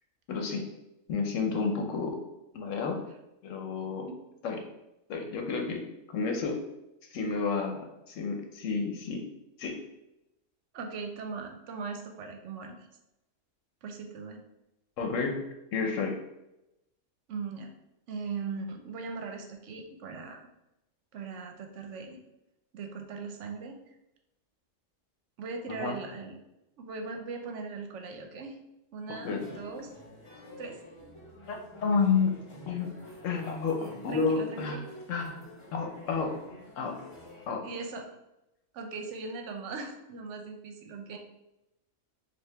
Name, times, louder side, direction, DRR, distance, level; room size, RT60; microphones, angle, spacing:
voice 1, 0.3-0.6 1.1-2.2 2.5-3.0 3.4-4.1 4.4-4.6 5.1-5.8 6.1-6.6 7.1-9.3 9.6-9.8 15.0-15.4 15.7-16.2 25.8-26.0 29.1-29.4 31.5-32.9 33.2-34.8 35.1-35.4 35.7-36.3 36.8-37.0 37.5-37.7, left 5 dB, 80° left, 3 dB, 1.0 m, -30 dB
voice 2, 10.7-12.8 13.8-14.4 17.3-17.7 18.1-20.4 21.1-22.2 22.7-23.8 25.4-26.4 26.8-28.6 28.9-29.9 30.6-30.8 33.8-34.8 37.6-38.1 38.7-41.2, right 4 dB, 70° right, 4 dB, 0.9 m, -39 dB
sound 1, 29.2-37.5, left 1 dB, 25° left, 0.8 m, -49 dB
4.6 x 2.5 x 3.3 m, 0.91 s
omnidirectional pair, 1.3 m